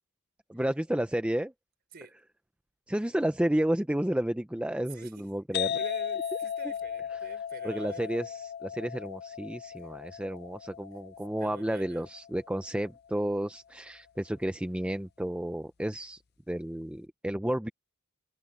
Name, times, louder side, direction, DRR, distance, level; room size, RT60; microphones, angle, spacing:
voice 1, 0.5-1.5 2.9-5.8 7.6-16.2 16.5-17.7, right 1 dB, 5° right, 0.4 m, -31 dB
voice 2, 4.9-5.3 5.5-8.2 11.4-12.1, right 3 dB, 45° right, 4.9 m, -47 dB
sound 1, 5.5-13.0, left 8 dB, 45° left, 0.6 m, -36 dB
head